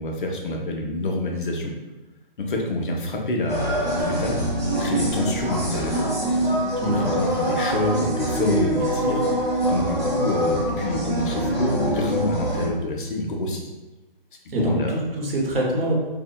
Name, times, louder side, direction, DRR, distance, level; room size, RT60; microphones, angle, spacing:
voice 1, 0.0-1.7 2.4-6.0 6.9-9.2 9.6-13.7 14.6-15.0, left 1 dB, 60° left, 0 dB, 0.6 m, -27 dB
sound 1, 3.5-12.7, right 1 dB, 15° right, 0.5 m, -24 dB
voice 2, 6.8-7.1 14.5-15.9, right 1 dB, 75° right, -2 dB, 0.8 m, -24 dB
2.6 x 2.1 x 2.2 m, 1.1 s
hypercardioid pair, 155°, 29 cm